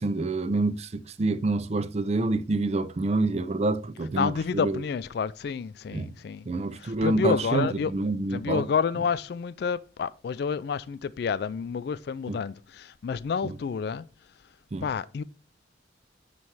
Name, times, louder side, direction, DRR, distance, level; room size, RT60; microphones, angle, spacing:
voice 1, 0.0-4.8 5.9-6.1 6.5-8.6 12.3-12.4 13.4-13.6 14.7-14.9, right 2 dB, 35° right, 0.4 m, -27 dB
voice 2, 4.1-6.5 6.8-7.9 8.3-14.1 14.8-15.2, left 6 dB, 55° left, 0.3 m, -29 dB
9.3 x 3.2 x 4.6 m
head